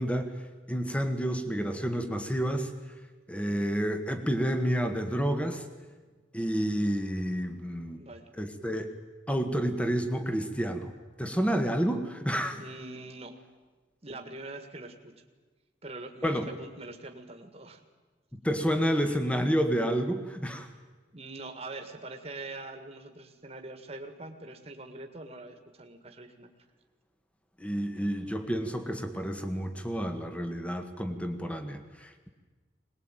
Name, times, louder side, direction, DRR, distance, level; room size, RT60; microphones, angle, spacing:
voice 1, 0.0-2.7 3.3-5.6 6.3-8.0 8.4-8.9 9.3-10.9 11.2-12.6 16.2-16.5 18.4-20.7 27.6-32.3, equal, 5° left, 8 dB, 1.6 m, -29 dB
voice 2, 8.0-8.3 12.5-13.4 14.0-15.1 15.8-17.8 21.1-26.5, right 2 dB, 35° right, 6 dB, 1.9 m, -43 dB
21.5 x 20.0 x 9.1 m, 1.3 s
head